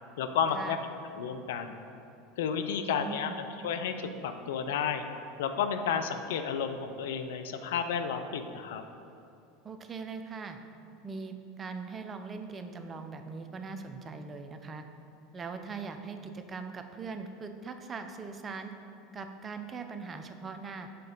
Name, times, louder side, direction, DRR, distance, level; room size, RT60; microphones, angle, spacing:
voice 1, 0.2-0.8 1.2-1.8 2.4-3.3 3.6-5.0 5.4-8.8, left 7 dB, 70° left, 8 dB, 0.4 m, -31 dB
voice 2, 2.9-3.5 9.6-10.6 11.0-14.8 15.3-18.7 19.1-20.9, right 4 dB, 30° right, 7 dB, 0.5 m, -41 dB
6.6 x 3.9 x 3.8 m, 2.7 s
hypercardioid pair, 80°, 0 cm